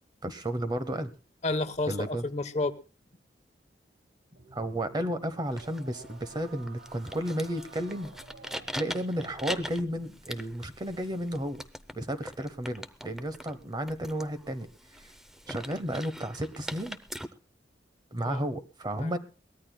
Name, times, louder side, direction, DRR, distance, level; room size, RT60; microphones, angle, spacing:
voice 1, 0.2-1.1 1.9-2.2 4.5-8.1 8.7-11.6 11.9-14.7 15.5-17.0 18.1-19.2, right 1 dB, 25° right, 11 dB, 0.9 m, -33 dB
voice 2, 1.4-2.8 18.2-18.4 19.0-19.2, left 2 dB, 40° left, 10 dB, 0.9 m, -31 dB
sound 1, 4.3-10.2, right 3 dB, 75° right, 1.0 m, -51 dB
sound 2, 5.4-17.3, equal, 5° right, 0.6 m, -43 dB
22.5 x 17.5 x 2.2 m, 0.32 s
head